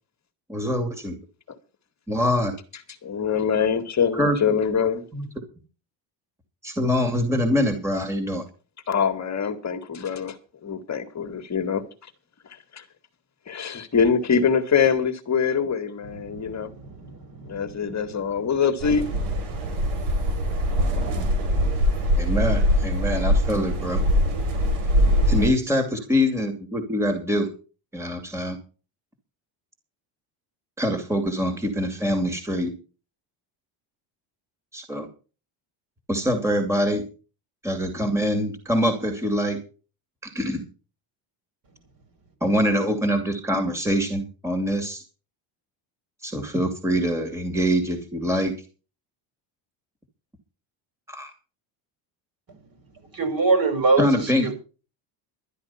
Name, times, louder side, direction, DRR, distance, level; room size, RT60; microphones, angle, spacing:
voice 1, 0.5-1.2 2.1-2.6 4.1-4.4 5.1-5.2 6.6-8.5 22.2-24.0 25.3-27.5 27.9-28.6 30.8-32.7 34.7-35.1 36.1-37.0 37.6-39.6 40.2-40.6 42.4-45.0 46.2-48.5 51.1-51.3 54.0-54.5, equal, 5° right, 2.5 m, -24 dB
voice 2, 3.0-5.0 8.9-10.4 10.6-11.8 12.7-12.8 13.5-16.7 17.5-19.1, left 6 dB, 35° left, 1.8 m, -24 dB
voice 3, 16.1-18.1 19.5-19.6 53.1-54.5, right 3 dB, 45° right, 6.4 m, -25 dB
sound 1, 18.8-25.5, equal, 85° right, 4.5 m, -22 dB
12.5 x 11.0 x 5.6 m
cardioid pair, 120°, 48 cm